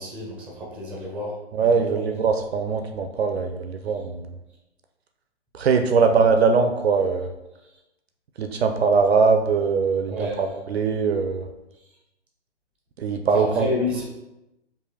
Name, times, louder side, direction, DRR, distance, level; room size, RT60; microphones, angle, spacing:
voice 1, 0.0-2.1 6.0-6.1 7.6-7.8 10.1-10.5 13.3-14.0, left 2 dB, 5° right, -3 dB, 0.7 m, -30 dB
voice 2, 1.5-4.3 5.5-7.3 8.4-11.5 13.0-13.7, right 5 dB, 65° right, 6 dB, 0.4 m, -21 dB
4.8 x 2.6 x 2.7 m, 0.95 s
figure-of-eight pair, 130°, 35 cm